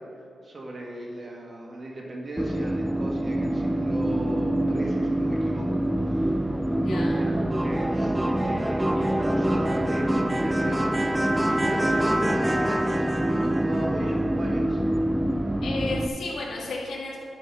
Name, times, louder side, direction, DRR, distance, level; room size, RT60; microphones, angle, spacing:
voice 1, 0.4-6.3 7.0-7.4 7.6-14.8, right 1 dB, 35° right, -2 dB, 1.7 m, -37 dB
sound 1, 2.4-16.1, right 1 dB, 10° right, 0.3 m, -25 dB
voice 2, 6.7-7.2 15.6-17.2, left 2 dB, 85° left, -4 dB, 2.1 m, -33 dB
12.0 x 4.1 x 5.6 m, 2.6 s
wide cardioid pair, 120°, 0 cm